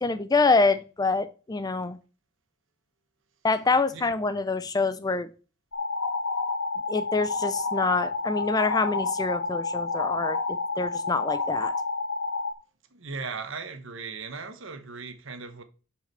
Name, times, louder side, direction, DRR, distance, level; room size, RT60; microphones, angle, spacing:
voice 1, 0.0-2.0 3.4-5.3 6.9-10.4 10.8-11.7, left 3 dB, 15° left, 0.4 m, -25 dB
sound 1, 5.7-12.5, left 3 dB, 55° left, 1.1 m, -29 dB
voice 2, 12.9-15.6, right 4 dB, 60° right, 1.1 m, -37 dB
7.7 x 4.8 x 6.7 m
head